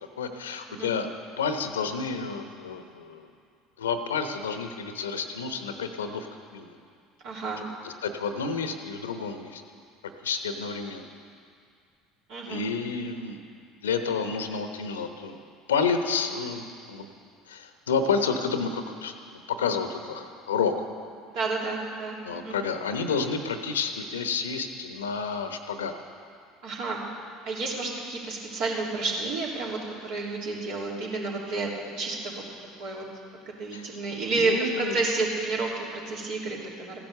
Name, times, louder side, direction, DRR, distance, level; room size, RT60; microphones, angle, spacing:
voice 1, 0.2-1.1 1.4-3.3 3.8-6.8 7.8-9.6 10.2-11.1 12.5-13.4 13.8-15.4 15.7-17.1 17.5-20.9 22.2-25.9 33.7-33.9 34.3-35.0, left 5 dB, 80° left, 7 dB, 1.0 m, -30 dB
voice 2, 7.2-7.6 12.3-12.6 21.3-22.6 26.6-27.0 27.4-32.4 32.8-33.1 33.6-37.0, right 3 dB, 60° right, -3 dB, 3.1 m, -30 dB
15.5 x 11.0 x 6.7 m, 2.3 s
figure-of-eight pair, 65°, 0 cm